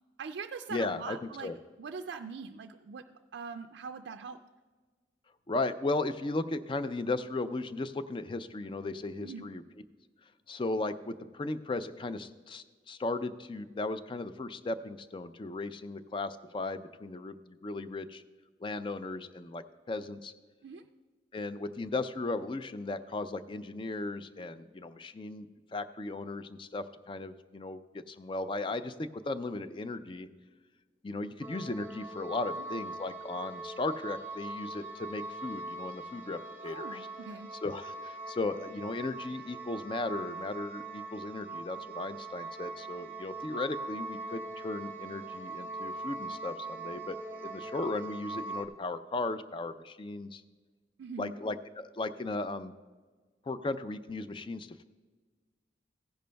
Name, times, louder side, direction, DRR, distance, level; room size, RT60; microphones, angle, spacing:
voice 1, 0.2-1.5 1.8-3.1 3.3-4.4 9.2-9.5 20.6-20.8 36.6-37.5 51.0-51.3, right 5 dB, 75° right, 6 dB, 0.4 m, -42 dB
voice 2, 0.7-1.5 5.5-9.6 10.5-18.2 18.6-20.3 21.3-30.3 31.0-37.1 37.6-50.4 51.2-52.7 53.5-54.8, left 2 dB, 30° left, 12 dB, 0.4 m, -36 dB
sound 1, 31.4-48.7, right 3 dB, 10° right, 0.8 m, -42 dB
15.5 x 10.5 x 2.2 m, 1.4 s
head